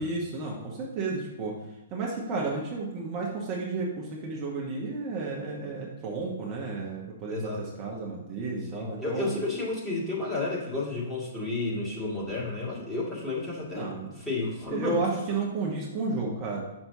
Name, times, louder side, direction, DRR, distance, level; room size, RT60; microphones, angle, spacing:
voice 1, 0.0-1.6 1.9-9.3 13.7-14.1 14.7-16.6, right 3 dB, 30° right, -3 dB, 1.1 m, -32 dB
voice 2, 7.3-7.6 8.7-15.0, left 2 dB, 10° left, -7 dB, 2.1 m, -32 dB
6.7 x 5.9 x 2.7 m, 0.97 s
hypercardioid pair, 130°, 0 cm